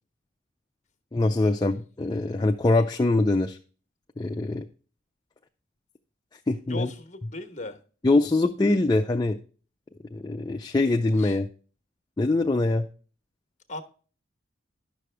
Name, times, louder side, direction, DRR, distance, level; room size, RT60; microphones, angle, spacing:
voice 1, 1.1-3.6 4.2-4.6 6.5-6.9 8.0-9.4 10.1-11.5 12.2-12.9, left 2 dB, 20° left, 0.4 m, -23 dB
voice 2, 6.7-7.8 11.2-11.4 13.7-13.8, left 2 dB, 35° left, 1.1 m, -37 dB
11.0 x 6.3 x 3.3 m
head